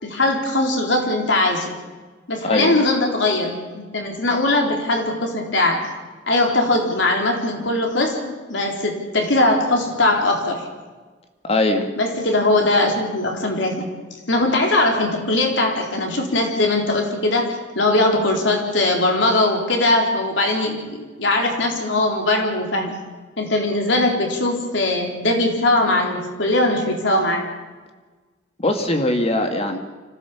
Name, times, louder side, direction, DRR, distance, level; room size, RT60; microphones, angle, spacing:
voice 1, 0.0-1.7 2.3-5.9 6.3-10.6 12.0-13.9 14.3-23.0 23.4-27.5, left 2 dB, 80° left, 2 dB, 3.9 m, -20 dB
voice 2, 2.4-2.8 11.4-11.9 28.6-29.8, left 1 dB, 35° left, 5 dB, 2.1 m, -20 dB
25.5 x 15.5 x 7.2 m, 1.3 s
head